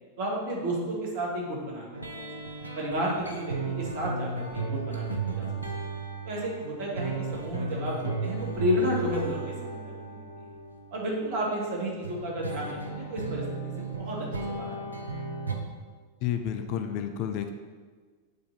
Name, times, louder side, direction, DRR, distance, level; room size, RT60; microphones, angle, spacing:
voice 1, 0.2-2.3 2.8-5.0 5.4-5.5 6.2-10.3 10.9-15.1, equal, 50° right, -3 dB, 1.9 m, -32 dB
sound 1, 1.9-11.4 12.0-15.5, right 4 dB, 85° right, 0.7 m, -35 dB
voice 2, 16.2-17.5, left 9 dB, 45° left, 8 dB, 0.4 m, -30 dB
8.1 x 3.9 x 4.2 m, 1.5 s
figure-of-eight pair, 90°, 0 cm